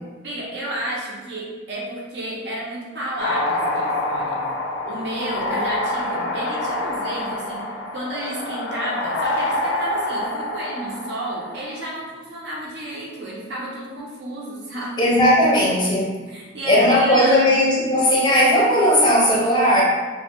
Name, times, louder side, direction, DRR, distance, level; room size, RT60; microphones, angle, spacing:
voice 1, 0.2-4.4 4.8-15.0 16.3-17.6, right 1 dB, 65° right, -4 dB, 0.6 m, -31 dB
sound 1, 3.2-11.8, left 1 dB, 85° left, 0.3 m, -26 dB
voice 2, 15.0-16.1 16.6-19.8, equal, 25° left, -5 dB, 0.5 m, -17 dB
2.1 x 2.1 x 2.8 m, 1.3 s
head